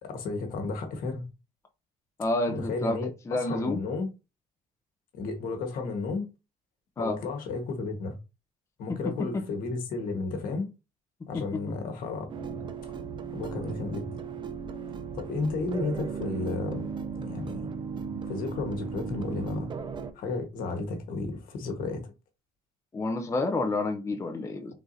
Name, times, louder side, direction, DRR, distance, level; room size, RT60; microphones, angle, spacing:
voice 1, 0.0-1.3 2.5-4.1 5.1-6.3 7.0-8.2 8.8-10.7 11.3-12.3 13.3-14.1 15.1-16.9 17.2-17.7 18.3-19.7 20.1-22.1, left 3 dB, 70° left, 1.4 m, -33 dB
voice 2, 2.2-3.0 3.3-3.8 7.0-7.2 8.9-9.4 11.3-11.8 22.9-24.7, left 2 dB, 20° left, 0.6 m, -29 dB
sound 1, 12.3-20.1, right 6 dB, 30° right, 0.6 m, -36 dB
4.6 x 3.8 x 2.7 m
cardioid pair, 115°, 15 cm